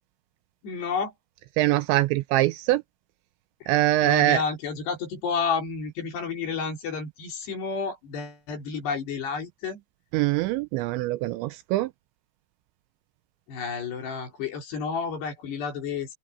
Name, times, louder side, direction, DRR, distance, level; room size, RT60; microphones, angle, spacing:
voice 1, 0.6-1.1 3.6-3.7 4.0-9.8 13.5-16.1, left 5 dB, 60° left, 5.8 m, -31 dB
voice 2, 1.6-2.8 3.7-4.4 10.1-11.9, right 16 dB, 80° right, 2.7 m, -23 dB
open air
omnidirectional pair, 5.6 m